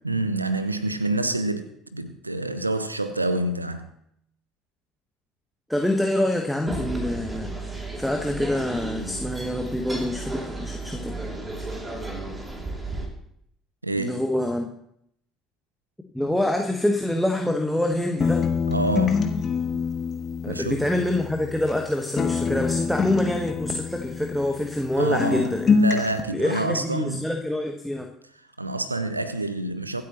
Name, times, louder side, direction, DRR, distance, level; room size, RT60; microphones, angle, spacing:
voice 1, 0.0-3.9 13.8-14.2 18.7-19.3 20.5-20.8 25.0-27.2 28.6-30.0, right 2 dB, 90° right, 0.6 m, -27 dB
voice 2, 5.7-11.2 14.0-14.7 16.1-18.5 20.4-25.8 26.3-28.1, left 1 dB, ahead, 1.3 m, -26 dB
sound 1, 6.7-13.1, right 2 dB, 20° right, 2.7 m, -33 dB
sound 2, 18.2-21.9 22.2-24.9 25.2-26.2, left 5 dB, 35° left, 1.3 m, -25 dB
25.0 x 8.5 x 3.0 m
figure-of-eight pair, 55°, 0 cm